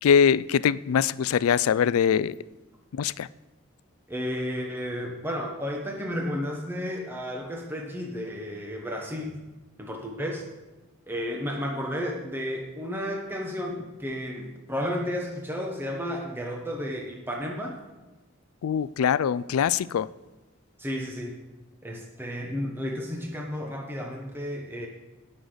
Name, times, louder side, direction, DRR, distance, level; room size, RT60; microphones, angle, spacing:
voice 1, 0.0-2.4 2.9-3.3 18.6-20.1, left 7 dB, 85° left, 0.3 m, -22 dB
voice 2, 4.1-9.4 9.8-10.4 11.1-17.8 20.8-21.4 21.8-24.9, equal, 10° right, 1.1 m, -32 dB
17.0 x 6.5 x 3.9 m
head